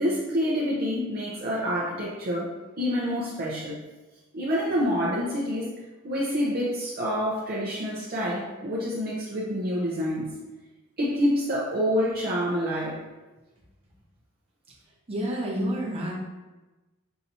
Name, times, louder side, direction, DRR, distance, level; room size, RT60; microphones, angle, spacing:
voice 1, 0.0-2.5 2.8-3.8 4.3-5.7 6.0-10.3 11.0-13.0, equal, 45° right, -5 dB, 0.7 m, -27 dB
voice 2, 15.1-16.1, equal, 30° right, -4 dB, 0.9 m, -29 dB
5.7 x 2.7 x 2.7 m, 1.1 s
head